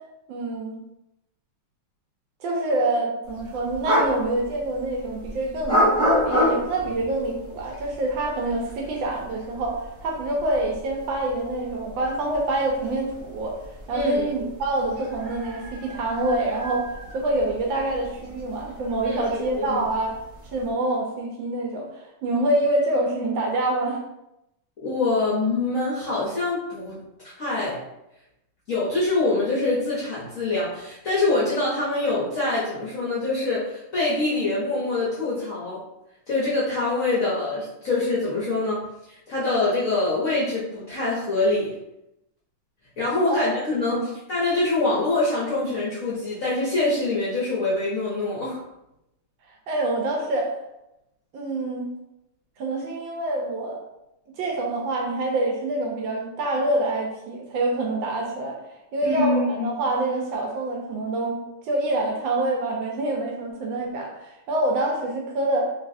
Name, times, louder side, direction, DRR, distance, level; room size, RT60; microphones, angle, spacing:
voice 1, 0.3-0.8 2.4-13.6 13.9-16.9 17.1-20.1 20.5-24.0 43.3-43.5 43.9-44.1 49.7-50.5 51.3-51.9 52.6-53.8 54.4-58.6 58.9-65.7, right 2 dB, 75° right, 0 dB, 1.2 m, -26 dB
sound 1, 3.2-20.7, equal, 55° right, 0.5 m, -30 dB
voice 2, 13.9-14.3 19.0-19.8 24.8-27.8 28.7-35.8 36.3-41.7 43.0-48.6 59.0-59.8, left 2 dB, 60° left, -8 dB, 0.9 m, -25 dB
3.1 x 2.9 x 2.5 m, 0.87 s
omnidirectional pair, 2.3 m